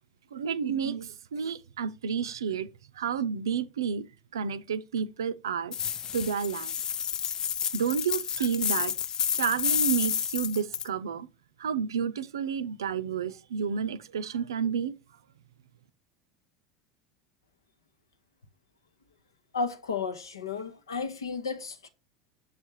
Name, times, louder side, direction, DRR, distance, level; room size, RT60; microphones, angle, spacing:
voice 1, 0.3-2.7 3.0-4.1 4.3-5.7 6.1-6.7 7.7-8.9 9.3-11.3 11.6-14.9, right 7 dB, 70° right, 0.4 m, -30 dB
sound 1, 5.7-10.9, left 8 dB, 30° left, 0.3 m, -30 dB
voice 2, 19.5-21.9, left 5 dB, 75° left, 0.9 m, -33 dB
7.2 x 3.2 x 4.7 m
figure-of-eight pair, 75°, 2 cm